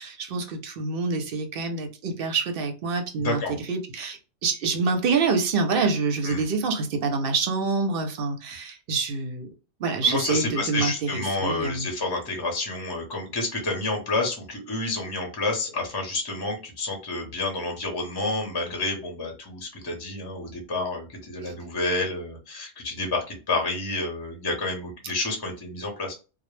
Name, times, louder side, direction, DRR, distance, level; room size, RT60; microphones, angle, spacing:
voice 1, 0.0-9.5 9.8-11.9 21.4-21.5 25.0-25.1, right 4 dB, 60° right, 0.7 m, -26 dB
voice 2, 3.2-3.5 6.2-6.4 10.0-26.1, left 2 dB, 25° left, 0.6 m, -29 dB
2.1 x 2.0 x 3.0 m
omnidirectional pair, 1.2 m